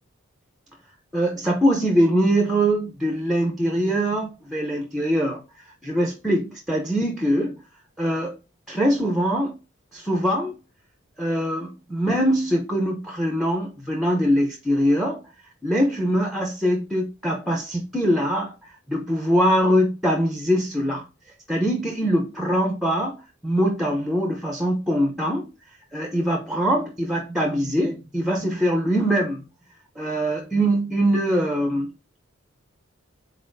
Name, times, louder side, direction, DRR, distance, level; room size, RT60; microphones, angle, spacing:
voice 1, 1.1-7.5 8.0-8.3 8.7-9.6 9.9-10.6 11.2-15.2 15.6-21.0 21.5-23.2 23.4-25.5 25.9-29.4 30.0-31.9, equal, ahead, 0.7 m, -23 dB
4.1 x 4.1 x 2.6 m
head